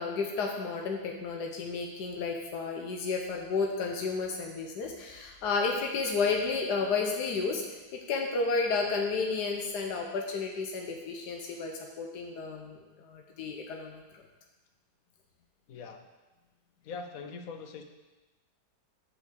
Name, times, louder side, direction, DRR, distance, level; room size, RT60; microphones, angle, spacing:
voice 1, 0.0-7.6 8.1-14.2, left 4 dB, 85° left, 1 dB, 1.5 m, -32 dB
voice 2, 15.7-16.0 16.8-17.8, left 4 dB, 65° left, 6 dB, 1.2 m, -42 dB
7.4 x 6.0 x 6.8 m, 1.1 s
omnidirectional pair, 1.7 m